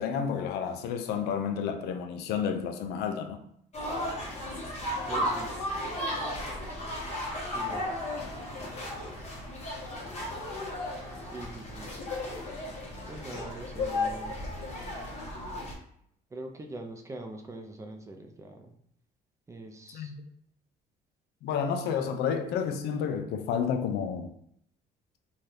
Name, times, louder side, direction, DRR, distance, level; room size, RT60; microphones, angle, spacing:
voice 1, 0.0-3.4 19.9-20.1 21.4-24.3, left 7 dB, 75° left, 0.4 m, -30 dB
sound 1, 3.7-15.7, left 1 dB, 40° left, 1.0 m, -34 dB
voice 2, 5.1-5.5 7.4-8.0 11.2-12.0 13.1-14.3 16.3-18.7 19.5-20.1 22.0-22.4, right 2 dB, 20° right, 0.4 m, -43 dB
2.7 x 2.3 x 3.3 m
cardioid pair, 110°, 17 cm